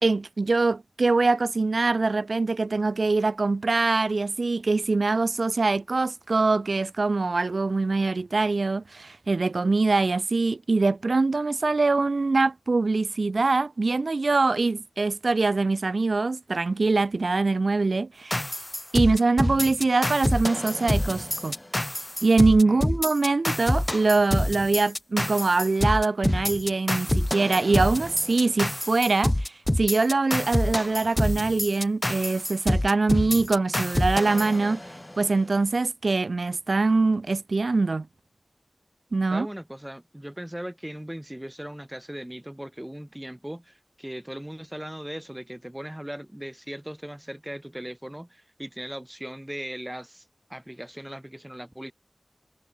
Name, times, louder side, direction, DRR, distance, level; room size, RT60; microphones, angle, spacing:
voice 1, 0.0-18.5 18.9-21.6 22.2-34.8 35.2-38.1 39.1-39.5, right 3 dB, 75° right, 0.3 m, -23 dB
sound 1, 18.3-35.2, left 1 dB, 20° left, 0.9 m, -27 dB
voice 2, 22.7-23.0 39.3-50.2 50.5-51.9, right 1 dB, 10° right, 1.0 m, -38 dB
wide cardioid pair, 45°, 0 cm